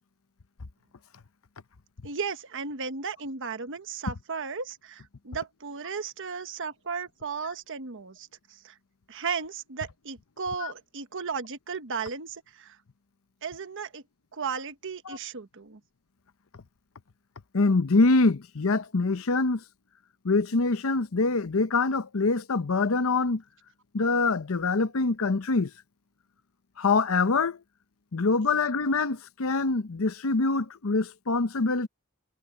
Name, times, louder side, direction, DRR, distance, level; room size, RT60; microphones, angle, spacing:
voice 1, 2.0-8.7 9.1-12.8 13.4-14.0 14.3-15.8, right 5 dB, 60° right, 1.2 m, -35 dB
voice 2, 17.5-19.6 20.2-23.4 23.9-25.7 26.8-27.6 28.1-31.9, left 3 dB, 70° left, 0.8 m, -24 dB
head